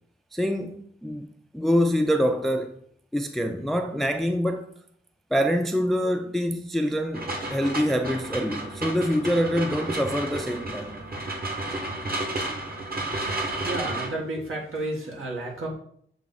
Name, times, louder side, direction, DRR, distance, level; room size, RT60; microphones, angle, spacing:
voice 1, 0.3-1.3 1.5-2.8 3.1-4.7 5.3-11.0, equal, ahead, 0.4 m, -25 dB
sound 1, 7.1-14.1, right 2 dB, 45° right, 1.4 m, -32 dB
voice 2, 13.5-15.7, right 2 dB, 75° right, 1.5 m, -32 dB
7.3 x 3.3 x 4.0 m
wide cardioid pair, 85°, 21 cm